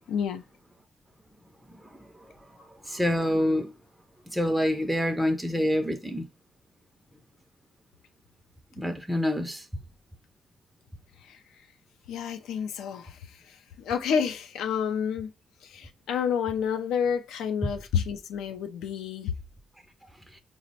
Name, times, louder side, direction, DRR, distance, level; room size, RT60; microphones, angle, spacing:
voice 1, 0.1-0.4 11.3-11.4 12.1-13.2 13.5-15.3 15.6-19.3, left 7 dB, 85° left, 0.3 m, -29 dB
voice 2, 2.9-3.7 4.3-6.3 8.8-9.6, left 1 dB, 5° right, 0.4 m, -26 dB
4.2 x 2.0 x 2.6 m
cardioid pair, 90°, 0 cm